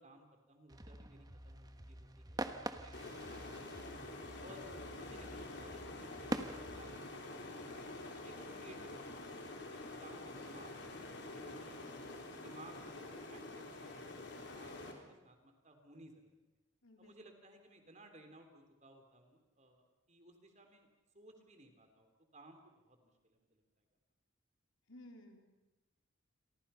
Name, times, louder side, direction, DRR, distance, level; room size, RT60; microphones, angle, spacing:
voice 1, 0.0-2.4 2.8-4.0 4.4-9.3 9.8-11.8 12.2-16.3 17.0-20.9 21.1-23.6, right 1 dB, 35° right, 5 dB, 3.3 m, -59 dB
sound 1, 0.7-7.0, right 1 dB, 20° right, 1.2 m, -45 dB
sound 2, 2.9-14.9, left 2 dB, 55° left, 3.8 m, -47 dB
voice 2, 16.8-17.1 24.9-25.6, left 1 dB, 75° left, 3 dB, 3.8 m, -56 dB
29.0 x 23.5 x 5.7 m, 1.0 s
head